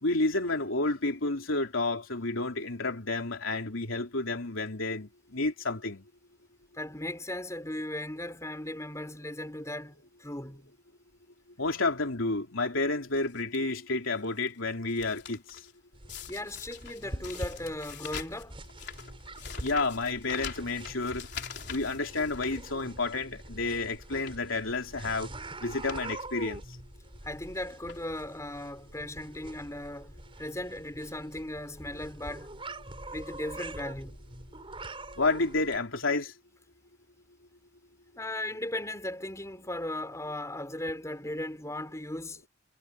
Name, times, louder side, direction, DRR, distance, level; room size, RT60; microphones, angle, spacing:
voice 1, 0.0-6.0 11.6-15.6 19.6-21.3 21.7-25.3 25.6-26.6 35.2-36.3, left 3 dB, 80° left, 3.1 m, -30 dB
voice 2, 6.7-10.7 16.3-18.6 27.2-32.5 33.1-34.2 38.2-42.4, left 1 dB, 15° left, 5.1 m, -37 dB
sound 1, 13.1-13.6 14.1-14.5 14.7-15.7 16.1-23.2 23.6-23.7 24.1-24.5 25.3-25.4 25.7-26.0 26.4-26.5 27.3-27.5 27.9-28.4 29.1-29.2 29.4-29.5, left 7 dB, 55° left, 3.9 m, -44 dB
sound 2, 15.9-35.8, right 2 dB, 25° right, 6.1 m, -45 dB
head